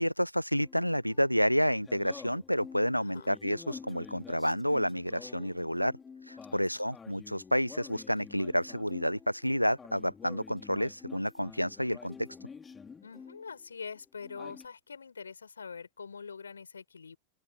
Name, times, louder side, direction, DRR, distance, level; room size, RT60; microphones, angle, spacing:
voice 1, 0.0-5.9 6.2-12.3, equal, 90° left, 0.7 m, -30 dB
sound 1, 0.6-13.7 13.9-14.7, left 5 dB, 15° left, 4.7 m, -49 dB
voice 2, 2.9-3.4 6.5-6.8 13.0-17.2, left 5 dB, 75° left, 6.7 m, -44 dB
open air
figure-of-eight pair, 90°, 0 cm